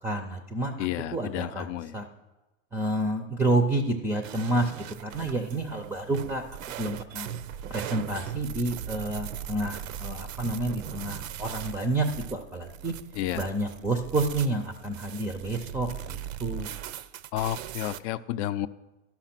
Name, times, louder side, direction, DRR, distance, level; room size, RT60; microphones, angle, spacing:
voice 1, 0.0-1.7 1.9-2.1 2.7-4.7 5.0-6.4 6.8-7.3 7.7-12.9 13.3-16.7, right 2 dB, 5° right, 5 dB, 0.4 m, -29 dB
voice 2, 0.8-2.0 13.1-13.5 17.3-18.7, left 13 dB, 60° left, 14 dB, 0.5 m, -31 dB
sound 1, 4.2-18.0, right 9 dB, 90° right, 0.6 m, -39 dB
12.0 x 5.9 x 5.8 m, 1.1 s
supercardioid pair, 130°, 38 cm